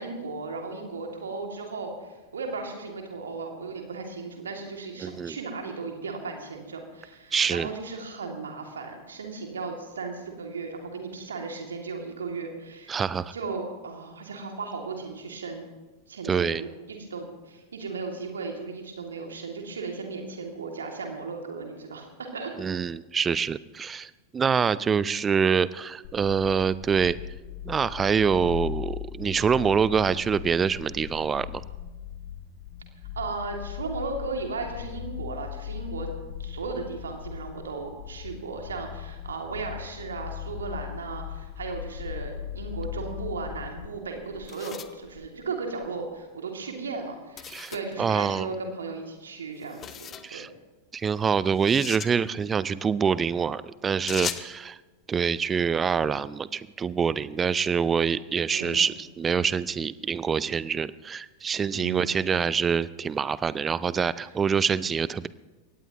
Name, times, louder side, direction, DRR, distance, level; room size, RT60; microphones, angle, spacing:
voice 1, 0.0-13.0 13.3-15.6 16.1-22.5 33.2-36.1 36.4-50.4 58.5-58.9 61.7-62.2, right 4 dB, 70° right, 2 dB, 2.4 m, -36 dB
voice 2, 5.0-5.4 7.3-7.7 12.9-13.3 16.2-16.6 22.6-27.2 27.6-31.6 47.5-47.7 48.0-48.5 50.2-50.5 50.9-54.8 55.1-65.3, right 6 dB, 20° right, 18 dB, 0.5 m, -25 dB
sound 1, 26.0-43.9, left 11 dB, 45° left, 1.5 m, -39 dB
sound 2, 44.0-46.0 47.4-48.0 49.6-50.3 51.5-52.1 54.1-54.5, left 8 dB, 25° left, 0.9 m, -38 dB
22.5 x 18.0 x 3.0 m, 1.2 s
figure-of-eight pair, 90°, 0 cm